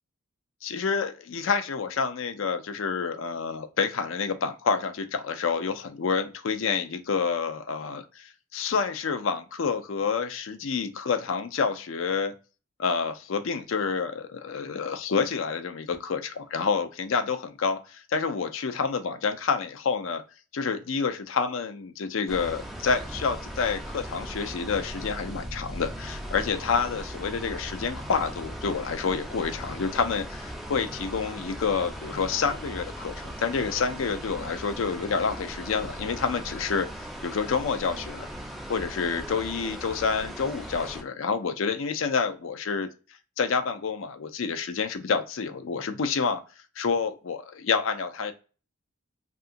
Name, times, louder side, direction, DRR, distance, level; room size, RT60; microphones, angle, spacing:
voice 1, 0.6-12.3 12.8-20.2 20.5-38.3 38.7-42.9 43.4-46.4 46.8-48.3, left 5 dB, 75° left, 8 dB, 0.4 m, -28 dB
sound 1, 22.3-41.0, equal, ahead, 0.3 m, -38 dB
2.8 x 2.4 x 2.5 m, 0.34 s
head